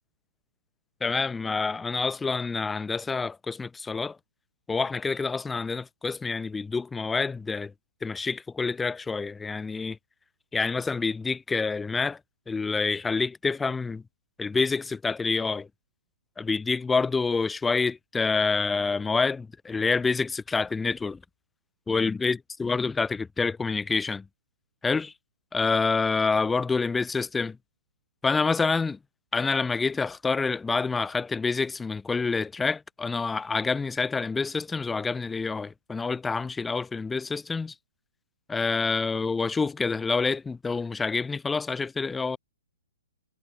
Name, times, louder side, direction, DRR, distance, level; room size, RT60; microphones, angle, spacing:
voice 1, 1.0-4.2 4.7-7.7 8.0-10.0 10.5-12.2 12.5-14.0 14.4-15.7 16.4-21.2 21.9-24.3 24.8-25.1 25.5-27.6 28.2-29.0 29.3-37.7 38.5-42.4, left 4 dB, 10° left, 2.0 m, -27 dB
figure-of-eight pair, 120°, 0 cm